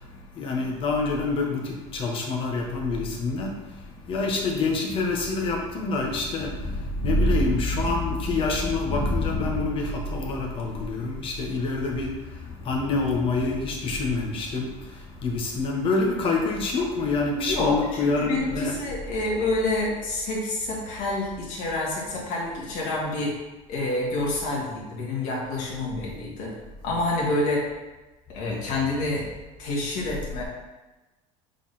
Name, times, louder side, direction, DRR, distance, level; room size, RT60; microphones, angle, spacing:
voice 1, 0.0-18.8, left 3 dB, 35° left, 0 dB, 1.3 m, -26 dB
voice 2, 17.4-23.3 23.7-26.5 26.8-27.7 28.3-29.2 29.6-30.4, left 2 dB, 55° left, -3 dB, 2.2 m, -28 dB
7.2 x 4.1 x 4.2 m, 1.1 s
cardioid pair, 155°, 16 cm